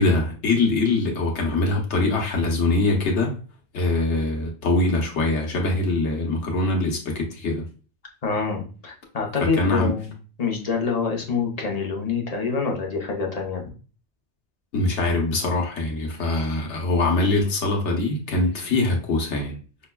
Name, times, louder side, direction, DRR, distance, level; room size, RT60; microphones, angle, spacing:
voice 1, 0.0-3.4 3.7-7.7 9.4-9.9 14.7-19.6, left 2 dB, 90° left, 1.2 m, -23 dB
voice 2, 8.2-10.1 10.4-13.6, left 5 dB, 40° left, 0.8 m, -26 dB
5.6 x 2.2 x 2.2 m
omnidirectional pair, 1.2 m